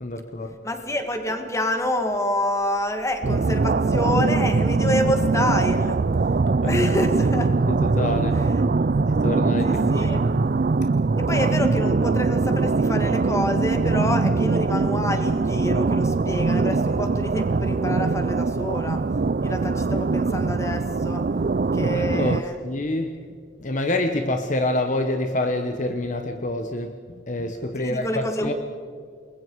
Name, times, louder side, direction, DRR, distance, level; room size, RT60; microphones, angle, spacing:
voice 1, 0.0-0.6 6.6-6.8 7.7-8.4 9.2-10.5 21.9-23.1 23.6-27.0 27.3-28.5, left 1 dB, 40° left, 6 dB, 1.1 m, -27 dB
voice 2, 0.6-6.0 6.7-7.5 9.6-10.2 11.2-19.0 19.4-21.2 21.7-22.5 27.8-28.5, left 1 dB, 15° left, 6 dB, 1.9 m, -27 dB
sound 1, 3.2-22.4, right 3 dB, 50° right, 0.4 m, -22 dB
28.5 x 21.5 x 4.7 m, 2.2 s
head